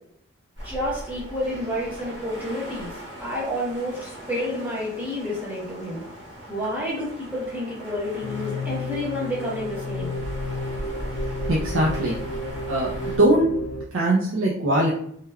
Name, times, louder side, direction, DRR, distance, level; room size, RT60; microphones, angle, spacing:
voice 1, 0.6-2.9 3.2-6.0 6.5-10.2, left 1 dB, 10° right, -6 dB, 0.8 m, -29 dB
sound 1, 0.6-13.2, equal, 60° right, 0.9 m, -38 dB
sound 2, 8.2-13.9, left 1 dB, 75° left, 0.3 m, -32 dB
voice 2, 11.5-12.2 12.7-13.5 13.9-14.9, right 1 dB, 80° right, -3 dB, 0.5 m, -21 dB
3.3 x 2.2 x 2.2 m, 0.68 s
head